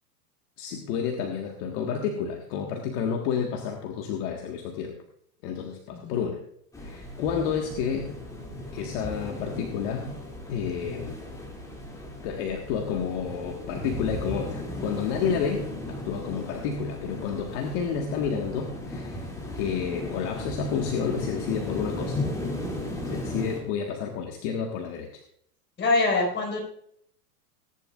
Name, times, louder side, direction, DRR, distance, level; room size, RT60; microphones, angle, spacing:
voice 1, 0.6-5.0 5.4-6.4 6.8-8.1 8.7-10.1 10.5-11.2 12.2-19.3 19.6-22.2 23.0-25.2, left 7 dB, 50° left, 2 dB, 1.8 m, -30 dB
sound 1, 6.7-23.6, left 1 dB, 5° left, 2.8 m, -36 dB
voice 2, 25.8-26.6, left 3 dB, 20° left, -1 dB, 5.2 m, -24 dB
18.5 x 10.5 x 2.5 m, 0.69 s
hypercardioid pair, 120°, 48 cm